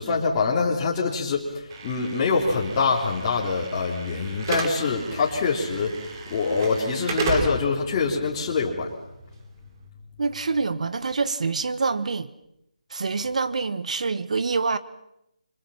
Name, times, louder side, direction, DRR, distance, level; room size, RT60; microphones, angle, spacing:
voice 1, 0.0-5.9 6.3-8.9, left 4 dB, 25° left, 3.8 m, -24 dB
Slam / Alarm, 1.7-9.8, right 4 dB, 30° right, 3.2 m, -34 dB
voice 2, 10.2-12.3 12.9-14.8, right 4 dB, 60° right, 1.5 m, -26 dB
29.0 x 25.5 x 5.8 m
figure-of-eight pair, 160°, 4 cm